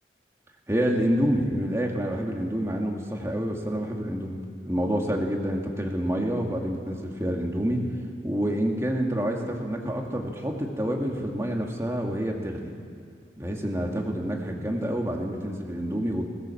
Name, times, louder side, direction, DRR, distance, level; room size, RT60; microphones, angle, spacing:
voice 1, 0.7-4.4 4.6-7.8 8.2-12.7 13.4-16.3, equal, 15° right, 0 dB, 2.2 m, -28 dB
21.0 x 18.0 x 7.2 m, 2.4 s
head